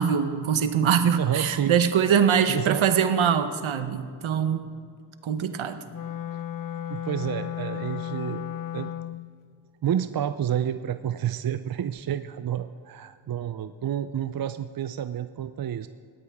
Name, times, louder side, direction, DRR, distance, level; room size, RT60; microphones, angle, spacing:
voice 1, 0.0-4.6 5.2-5.8, right 7 dB, 80° right, 9 dB, 1.0 m, -23 dB
voice 2, 1.1-1.8 2.5-2.8 6.9-8.9 9.8-15.9, right 10 dB, 50° right, 11 dB, 0.5 m, -29 dB
Wind instrument woodwind instrument, 5.9-9.3, left 11 dB, 45° left, 0.6 m, -34 dB
17.5 x 12.5 x 3.6 m, 2.3 s
cardioid pair, 50°, 47 cm